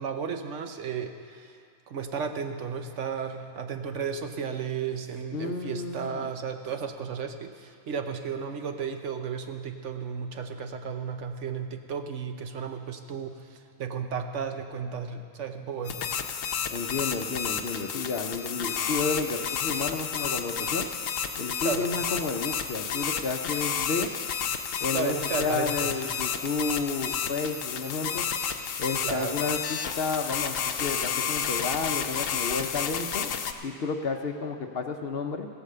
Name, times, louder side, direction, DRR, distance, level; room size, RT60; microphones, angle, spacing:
voice 1, 0.0-1.5 1.9-16.0 21.6-21.9 24.9-26.0 29.0-29.4, right 6 dB, 65° right, 6 dB, 1.1 m, -34 dB
voice 2, 5.3-6.3 16.7-20.9 21.4-24.1 24.8-28.2 28.8-33.3 33.6-35.5, left 4 dB, 55° left, 5 dB, 0.9 m, -31 dB
sound 1, 15.9-33.5, left 7 dB, 75° left, 1.1 m, -31 dB
16.0 x 8.3 x 6.7 m, 2.4 s
omnidirectional pair, 1.4 m